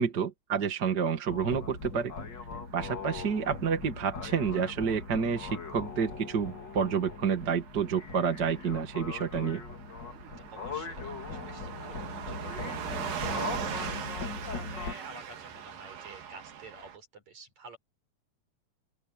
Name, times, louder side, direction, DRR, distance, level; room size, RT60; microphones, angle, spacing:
voice 1, 0.0-2.1 2.7-9.6, right 6 dB, 35° right, 2.1 m, -29 dB
sound 1, 1.3-14.9, left 4 dB, 35° left, 2.5 m, -40 dB
Car passing by / Truck, 2.6-17.0, right 8 dB, 90° right, 3.8 m, -42 dB
voice 2, 10.1-14.2 14.5-17.8, right 3 dB, 55° right, 7.1 m, -50 dB
open air
omnidirectional pair, 3.9 m